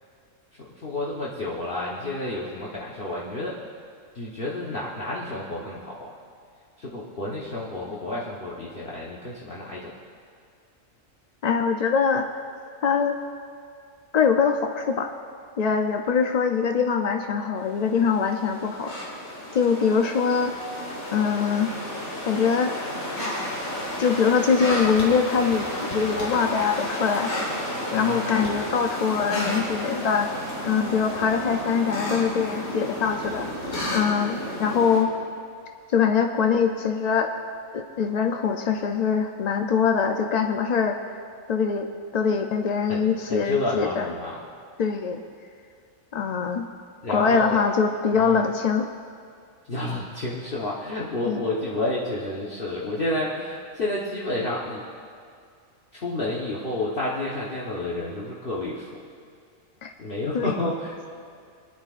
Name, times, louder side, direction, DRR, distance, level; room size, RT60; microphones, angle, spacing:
voice 1, 0.6-3.6 4.1-6.2 6.8-10.0 27.9-28.4 42.9-43.0 43.3-44.4 47.0-47.6 48.1-48.4 49.7-54.8 55.9-59.0 60.0-61.0, left 2 dB, 45° left, -6 dB, 1.3 m, -30 dB
voice 2, 11.4-12.3 12.8-13.2 14.1-15.1 15.6-18.9 19.5-20.5 21.1-21.7 22.3-22.7 24.0-25.7 25.9-30.3 30.6-33.5 33.9-35.1 35.9-37.3 37.7-41.2 41.5-44.1 44.8-45.2 46.1-46.7 47.1-48.9 51.2-51.4 59.8-59.9 60.3-60.6, left 6 dB, 65° left, 4 dB, 0.4 m, -23 dB
sound 1, 17.7-35.0, left 1 dB, 85° left, 2.7 m, -32 dB
22.5 x 10.5 x 2.5 m, 2.3 s
omnidirectional pair, 1.4 m